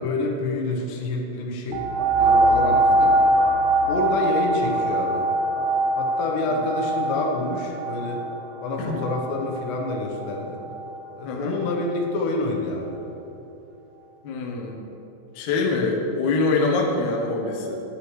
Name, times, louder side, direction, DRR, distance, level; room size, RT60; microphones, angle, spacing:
voice 1, 0.0-1.8 2.2-3.2 3.9-5.3 6.0-8.2 8.6-10.6 11.1-13.0 15.7-15.9, left 2 dB, 85° left, 1 dB, 3.2 m, -27 dB
sound 1, 1.7-11.0 11.6-11.7, right 1 dB, 80° right, 2.6 m, -23 dB
voice 2, 11.2-11.6 14.2-14.9 15.4-17.8, left 3 dB, 70° left, 0 dB, 1.9 m, -25 dB
10.0 x 9.5 x 3.2 m, 2.9 s
omnidirectional pair, 4.8 m